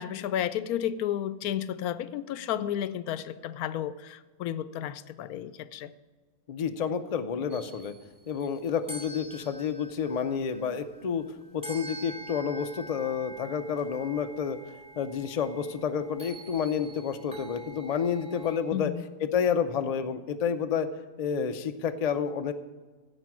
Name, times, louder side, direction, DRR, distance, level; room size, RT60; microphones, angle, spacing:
voice 1, 0.0-5.9 18.7-19.0, left 10 dB, 85° left, 15 dB, 1.1 m, -32 dB
voice 2, 6.5-7.9 8.3-11.3 11.5-14.6 15.0-18.9 19.2-20.9 21.2-22.5, left 7 dB, 50° left, 8 dB, 0.4 m, -29 dB
sound 1, 7.5-18.6, right 2 dB, 5° right, 2.0 m, -46 dB
15.5 x 5.2 x 6.0 m, 1.3 s
omnidirectional pair, 1.5 m